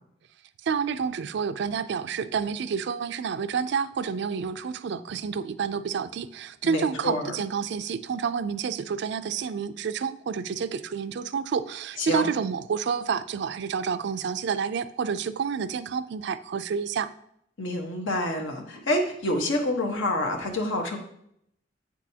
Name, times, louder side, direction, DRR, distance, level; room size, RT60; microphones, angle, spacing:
voice 1, 0.6-17.1, right 6 dB, 60° right, 14 dB, 0.4 m, -29 dB
voice 2, 6.6-7.4 12.0-12.3 17.6-21.0, left 1 dB, 80° left, 3 dB, 1.2 m, -27 dB
8.0 x 6.1 x 2.8 m, 0.72 s
head